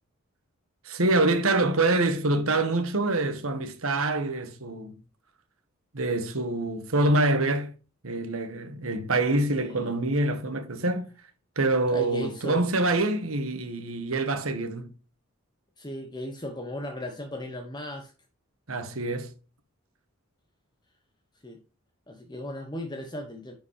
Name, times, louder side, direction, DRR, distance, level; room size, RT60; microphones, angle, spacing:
voice 1, 0.8-5.0 5.9-7.7 8.0-11.1 11.6-14.9 18.7-19.3, right 2 dB, 75° right, 1.5 m, -26 dB
voice 2, 9.6-10.0 11.9-12.7 15.8-18.1 21.4-21.6 22.1-23.5, left 1 dB, 20° left, 1.0 m, -36 dB
10.5 x 5.1 x 3.3 m
head